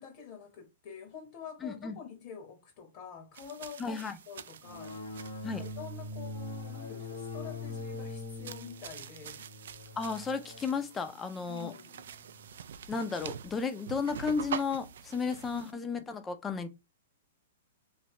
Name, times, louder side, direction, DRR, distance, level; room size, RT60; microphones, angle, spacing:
voice 1, 0.0-5.0 5.4-9.5 11.5-12.0 15.2-15.6, left 7 dB, 40° left, 0.9 m, -47 dB
voice 2, 1.6-2.0 3.8-4.2 5.4-5.6 10.0-11.7 12.9-16.7, left 5 dB, 15° left, 0.4 m, -33 dB
sound 1, 3.3-15.7, right 8 dB, 75° right, 0.3 m, -46 dB
sound 2, 4.6-12.8, left 2 dB, 80° left, 1.1 m, -43 dB
3.2 x 2.7 x 2.9 m
hypercardioid pair, 155°, 0 cm